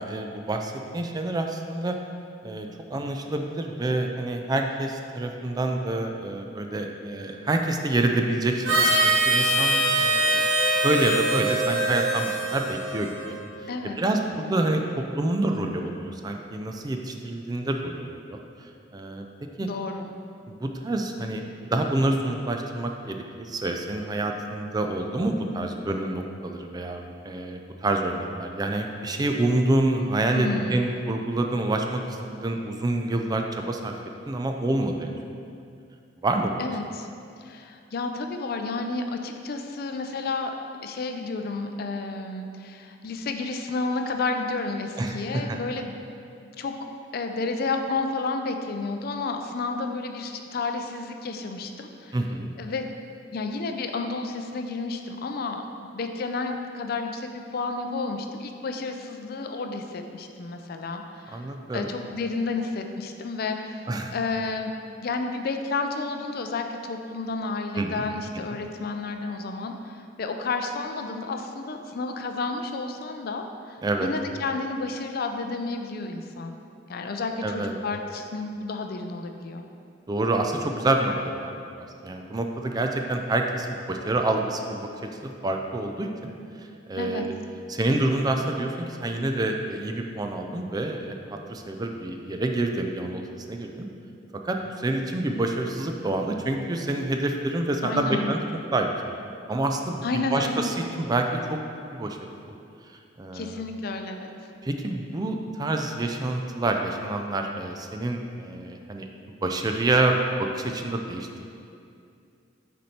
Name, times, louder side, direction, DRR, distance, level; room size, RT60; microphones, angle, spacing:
voice 1, 0.0-2.0 2.4-10.4 10.8-13.4 13.6-13.7 14.0-18.4 18.9-19.3 19.6-19.7 20.5-21.4 21.7-33.9 34.3-35.1 36.2-36.7 45.0-45.6 52.1-52.5 61.3-61.9 63.9-64.1 67.7-68.0 73.8-74.1 77.4-77.8 80.1-86.3 86.6-87.3 87.7-93.9 94.4-98.4 98.7-98.9 99.5-101.6 101.9-102.2 103.2-103.6 104.6-109.1 109.4-111.4, right 2 dB, 20° right, 3 dB, 0.4 m, -27 dB
Harmonica, 8.6-13.4, right 1 dB, 80° right, 1.1 m, -23 dB
voice 2, 19.6-20.1 30.3-30.8 36.6-37.1 37.4-40.6 40.8-45.9 46.6-46.8 47.1-52.2 52.6-52.9 53.3-61.5 61.7-64.7 65.0-76.5 76.9-79.6 87.0-87.2 97.8-98.3 100.0-100.7 103.3-104.3, left 3 dB, 55° left, 5 dB, 0.4 m, -31 dB
6.2 x 4.3 x 4.2 m, 2.5 s
head